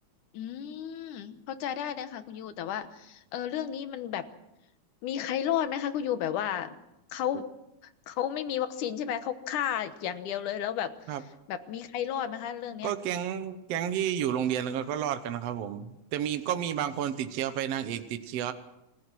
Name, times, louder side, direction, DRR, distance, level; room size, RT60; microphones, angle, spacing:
voice 1, 0.3-4.3 5.0-6.8 7.1-7.5 8.1-10.9 11.5-12.9, left 10 dB, 90° left, 11 dB, 2.6 m, -32 dB
voice 2, 12.8-18.5, right 9 dB, 65° right, 9 dB, 1.9 m, -31 dB
27.0 x 15.5 x 6.2 m, 0.89 s
omnidirectional pair, 3.5 m